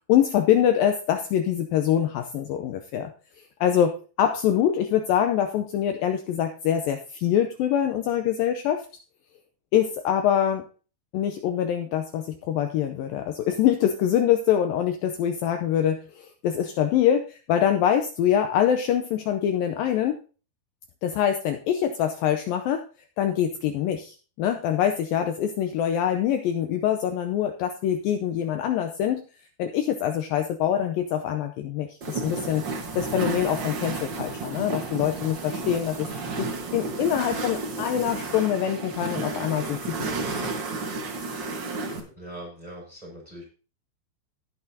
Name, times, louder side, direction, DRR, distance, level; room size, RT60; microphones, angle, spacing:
voice 1, 0.1-3.1 3.6-3.9 4.2-8.9 9.7-10.7 11.1-20.2 21.0-22.8 23.2-29.3 29.6-32.6 33.0-36.1 36.4-40.0, left 10 dB, 75° left, 6 dB, 2.3 m, -24 dB
sound 1, 32.0-42.0, right 3 dB, 65° right, 1.1 m, -32 dB
voice 2, 42.2-43.4, right 1 dB, 10° right, -1 dB, 5.4 m, -41 dB
18.0 x 6.6 x 2.8 m, 0.36 s
omnidirectional pair, 4.4 m